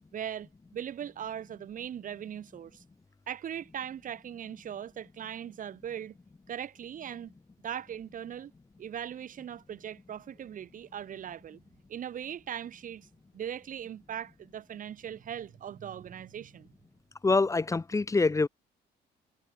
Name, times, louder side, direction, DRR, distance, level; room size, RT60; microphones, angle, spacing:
voice 1, 0.1-2.8 3.3-6.1 6.5-7.3 7.6-8.5 8.8-11.6 11.9-13.1 13.3-16.7, right 9 dB, 50° right, 7.7 m, -39 dB
voice 2, 17.2-18.5, left 3 dB, 20° left, 2.0 m, -25 dB
cardioid pair, 110°, 17 cm